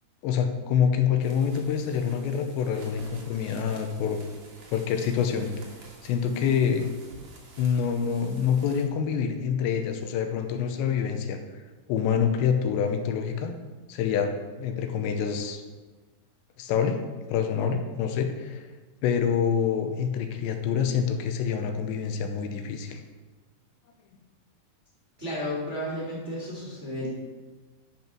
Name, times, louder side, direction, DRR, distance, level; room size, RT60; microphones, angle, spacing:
voice 1, 0.2-4.2 4.7-5.5 6.0-6.9 7.6-11.4 11.9-13.5 13.9-15.6 16.6-17.0 17.3-18.6 19.0-23.0, left 7 dB, 85° left, 6 dB, 3.0 m, -26 dB
sound 1, 1.1-8.8, right 3 dB, 55° right, 2.2 m, -50 dB
voice 2, 25.2-27.1, equal, 25° right, -6 dB, 1.7 m, -33 dB
11.0 x 5.5 x 5.9 m, 1.3 s
omnidirectional pair, 5.1 m